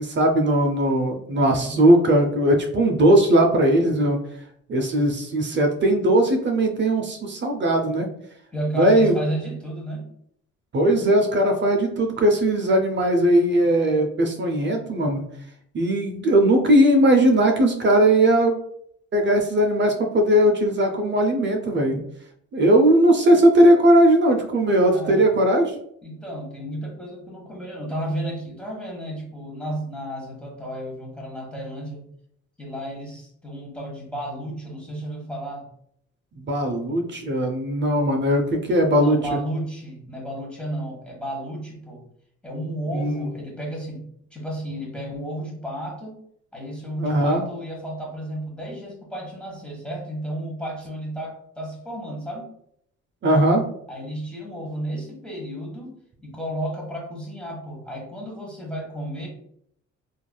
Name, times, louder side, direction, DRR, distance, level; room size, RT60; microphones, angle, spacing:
voice 1, 0.0-4.2 4.7-8.1 8.8-9.1 10.7-15.2 15.7-18.6 19.1-22.0 22.5-25.8 36.3-39.4 42.9-43.3 47.0-47.4 53.2-53.6, right 1 dB, 40° right, 3 dB, 0.5 m, -19 dB
voice 2, 1.3-1.9 8.5-10.1 24.9-25.3 26.0-32.1 32.6-35.7 39.0-42.1 42.4-46.1 46.5-52.5 53.9-56.0 56.2-59.3, right 1 dB, 5° left, -2 dB, 1.1 m, -32 dB
3.1 x 2.5 x 2.2 m, 0.69 s
cardioid pair, 90°, 30 cm